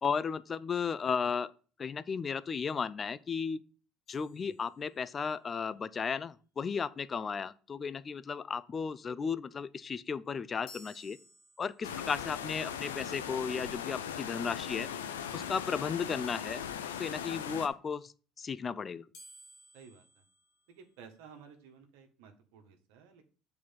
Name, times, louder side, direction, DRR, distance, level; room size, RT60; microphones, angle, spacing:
voice 1, 0.0-1.5 1.8-3.6 4.1-11.2 11.6-14.9 15.3-16.7 17.0-18.1 18.4-19.0, left 6 dB, 35° left, 0.6 m, -34 dB
sound 1, 4.1-5.4 10.7-12.1 19.1-21.3, left 1 dB, 65° left, 2.0 m, -57 dB
sound 2, 11.8-17.7, left 8 dB, 85° left, 0.6 m, -39 dB
voice 2, 11.9-12.2 19.7-20.2 20.7-23.2, right 6 dB, 75° right, 1.6 m, -55 dB
8.4 x 4.3 x 5.9 m
hypercardioid pair, 65°, 0 cm